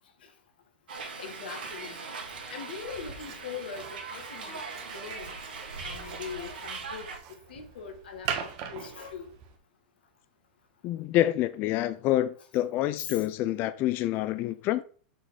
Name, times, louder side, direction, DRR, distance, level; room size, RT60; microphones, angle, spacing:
Hiss, 0.9-7.2, right 4 dB, 80° right, 2.5 m, -40 dB
voice 1, 1.2-2.0 2.5-4.6 4.9-5.3 5.8-9.4 13.0-13.2, left 6 dB, 80° left, 2.0 m, -41 dB
sound 1, 3.2-9.6, right 8 dB, 50° right, 1.6 m, -41 dB
voice 2, 10.8-14.8, left 14 dB, 45° left, 0.6 m, -27 dB
7.5 x 4.2 x 5.3 m
hypercardioid pair, 110°, 5 cm